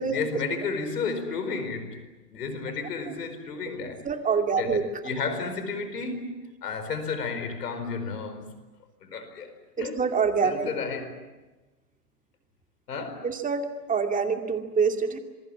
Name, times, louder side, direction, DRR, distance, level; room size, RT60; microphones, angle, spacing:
voice 1, 0.0-4.0 4.6-8.5 9.0-10.0 10.4-11.2 12.9-13.3, left 4 dB, 75° left, 4.8 m, -32 dB
voice 2, 4.0-4.8 9.8-10.7 13.2-15.2, right 5 dB, 15° right, 2.5 m, -26 dB
26.5 x 22.5 x 8.7 m
hypercardioid pair, 110°, 47 cm